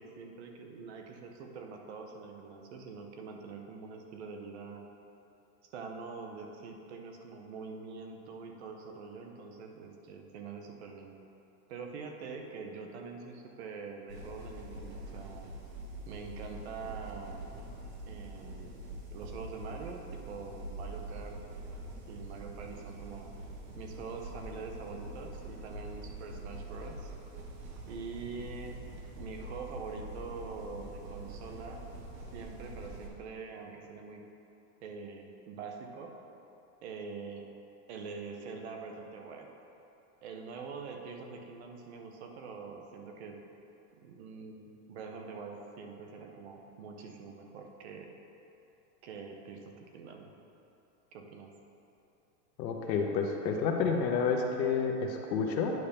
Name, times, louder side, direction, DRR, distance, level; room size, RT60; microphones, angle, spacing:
voice 1, 0.0-4.8 5.7-11.1 11.7-15.5 16.1-17.4 18.1-18.7 19.1-21.4 22.1-23.3 23.8-27.1 27.8-28.8 29.2-31.9 32.3-34.3 34.8-36.1 36.8-37.5 37.9-39.5 40.2-43.4 44.0-48.1 49.0-50.3 51.1-51.5, right 5 dB, 40° right, 3 dB, 0.7 m, -44 dB
sound 1, 14.1-33.1, right 1 dB, 75° right, 1.5 m, -44 dB
voice 2, 52.6-55.7, left 5 dB, 85° left, 2 dB, 1.1 m, -29 dB
9.4 x 5.7 x 3.4 m, 2.9 s
supercardioid pair, 170°, 50 cm